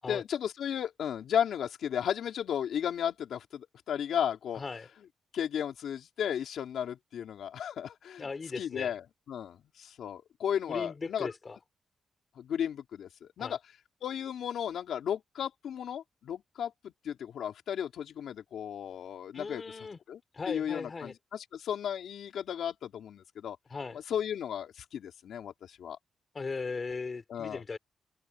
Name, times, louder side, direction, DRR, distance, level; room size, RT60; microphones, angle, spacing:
voice 1, 0.1-4.6 5.3-8.3 8.6-11.3 12.4-13.6 14.0-19.6 20.1-20.2 20.4-23.6 23.9-26.0 27.3-27.6, left 9 dB, 80° left, 3.6 m, -34 dB
voice 2, 4.5-4.9 8.2-8.9 10.7-11.6 13.4-13.6 19.3-20.0 20.3-21.1 23.7-24.0 26.3-27.8, left 4 dB, 35° left, 3.5 m, -38 dB
open air
cardioid pair, 120°, 0 cm